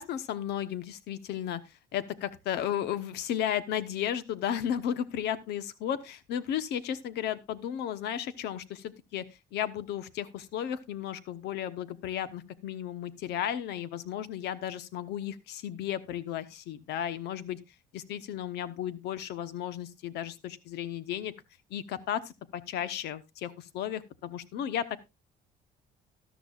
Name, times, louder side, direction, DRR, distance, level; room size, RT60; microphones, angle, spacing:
voice 1, 0.0-9.2 9.5-17.6 17.9-21.3 21.7-25.0, left 10 dB, 80° left, 15 dB, 1.0 m, -34 dB
13.5 x 12.5 x 2.4 m, 0.23 s
cardioid pair, 110°, 17 cm